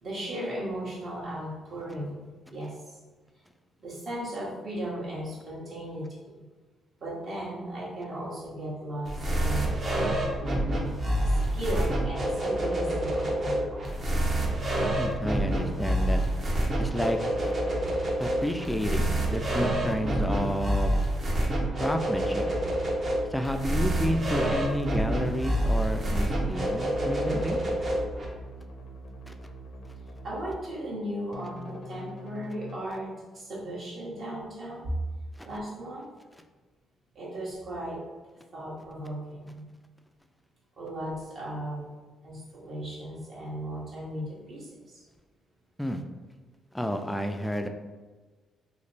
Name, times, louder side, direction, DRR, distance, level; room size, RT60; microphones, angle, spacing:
voice 1, 0.0-2.1 2.5-2.7 3.8-6.1 7.0-10.4 11.2-13.9 30.2-34.9 35.4-36.1 37.1-38.0 38.5-39.6 40.8-41.8 42.2-44.9, right 1 dB, 55° right, -6 dB, 1.4 m, -36 dB
sound 1, 9.1-28.3, right 1 dB, 35° right, 0.8 m, -27 dB
voice 2, 15.0-16.2 16.8-17.5 18.2-21.0 21.8-22.5 23.3-27.6 29.3-29.4 35.4-35.5 45.8-46.0 46.7-47.7, equal, 5° left, 5 dB, 0.3 m, -30 dB
sound 2, 26.5-30.5 31.3-32.8, equal, 75° left, 0.5 m, -44 dB
3.1 x 2.1 x 4.1 m, 1.3 s
cardioid pair, 90°, 0 cm